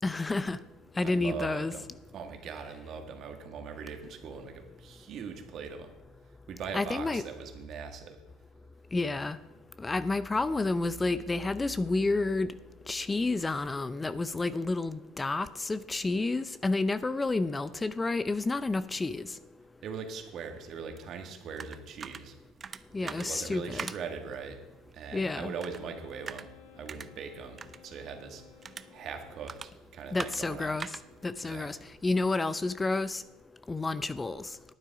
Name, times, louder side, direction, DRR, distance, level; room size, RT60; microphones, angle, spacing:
voice 1, 0.0-0.6 1.0-1.7 6.7-7.2 8.9-9.4 9.8-12.5 12.9-19.4 22.9-23.9 25.1-25.5 30.1-30.9 31.2-31.8 32.0-33.2 33.7-34.6, left 3 dB, 20° left, 15 dB, 0.5 m, -30 dB
voice 2, 1.0-1.9 2.1-5.9 6.5-8.2 19.8-22.3 22.9-24.6 24.9-28.4 28.9-30.8 31.4-31.7, right 6 dB, 55° right, 5 dB, 1.8 m, -41 dB
sound 1, 21.0-32.6, right 6 dB, 35° right, 0.6 m, -46 dB
Wind instrument woodwind instrument, 25.1-29.8, left 11 dB, 85° left, 1.0 m, -56 dB
11.0 x 9.1 x 4.8 m, 1.1 s
supercardioid pair, 80°, 0 cm